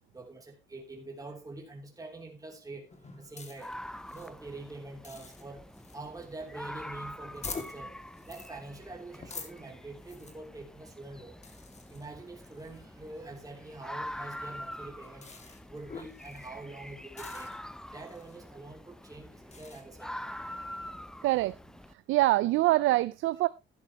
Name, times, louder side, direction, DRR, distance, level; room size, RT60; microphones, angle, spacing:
voice 1, 0.1-3.7 4.1-5.7 5.9-7.9 8.3-11.4 11.9-15.3 15.7-17.5 17.9-20.3, right 2 dB, 15° right, 3.1 m, -45 dB
sound 1, 2.9-19.8, left 4 dB, 35° left, 2.4 m, -49 dB
sound 2, 3.6-21.9, left 1 dB, 5° left, 0.5 m, -45 dB
voice 2, 21.2-21.6 22.1-23.5, right 17 dB, 90° right, 0.5 m, -24 dB
12.0 x 10.5 x 3.0 m
cardioid pair, 90°, 20 cm